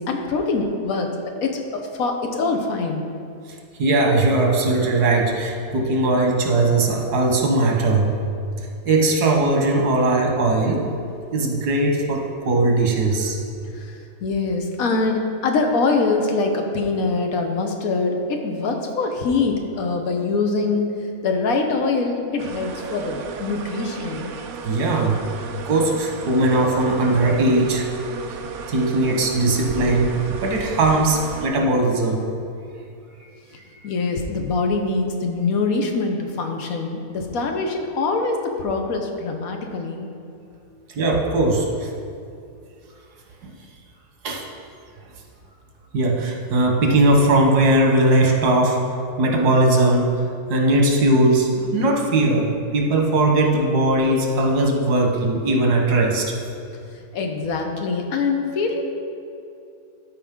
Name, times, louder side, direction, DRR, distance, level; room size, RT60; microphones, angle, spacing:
voice 1, 0.0-3.0 13.7-20.9 21.2-24.3 33.8-40.1 57.1-58.8, left 3 dB, 70° left, 3 dB, 1.2 m, -24 dB
voice 2, 3.8-8.1 8.8-10.9 11.3-13.4 24.6-25.2 25.6-27.8 28.7-32.3 41.0-41.9 43.4-43.5 44.2-44.4 45.9-48.8 49.2-50.1 50.5-56.3, right 2 dB, 90° right, 1 dB, 1.6 m, -19 dB
sound 1, 22.4-31.5, right 5 dB, 65° right, 0.8 m, -34 dB
12.5 x 4.9 x 3.6 m, 2.5 s
omnidirectional pair, 1.6 m